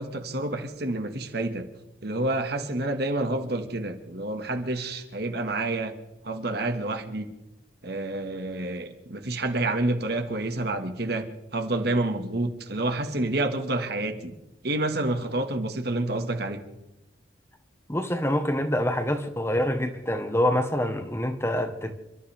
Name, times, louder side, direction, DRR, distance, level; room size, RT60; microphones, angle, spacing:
voice 1, 0.0-1.7 2.0-6.0 6.2-7.3 7.8-11.3 11.5-14.3 14.6-16.6, right 2 dB, 55° right, 1.9 m, -28 dB
voice 2, 17.9-21.9, left 1 dB, 15° left, 1.3 m, -26 dB
29.0 x 13.5 x 3.6 m
head